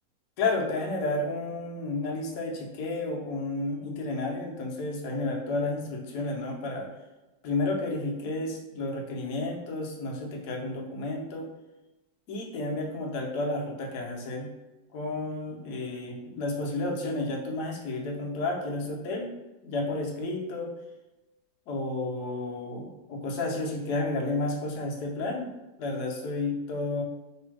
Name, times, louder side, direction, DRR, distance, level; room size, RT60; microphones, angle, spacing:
voice 1, 0.4-6.9 7.4-11.5 12.3-14.5 14.9-19.3 19.6-20.7 21.7-25.5 25.8-27.0, left 2 dB, 65° left, 0 dB, 1.2 m, -31 dB
3.4 x 2.7 x 4.5 m, 1.0 s
omnidirectional pair, 2.0 m